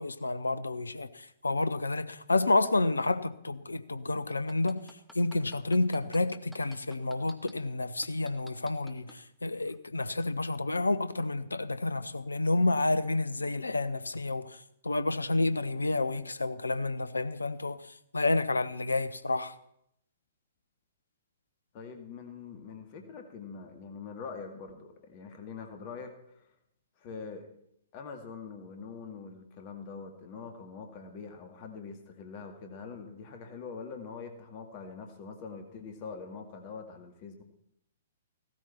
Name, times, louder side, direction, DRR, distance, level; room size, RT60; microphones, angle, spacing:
voice 1, 0.0-19.5, left 2 dB, 75° left, 0.9 m, -30 dB
sound 1, 4.3-7.5 8.0-9.2 9.7-9.8, equal, ahead, 1.2 m, -52 dB
voice 2, 21.7-26.5 27.0-27.5 27.9-37.4, left 5 dB, 35° left, 2.1 m, -44 dB
16.5 x 13.0 x 4.4 m
figure-of-eight pair, 115°, 0 cm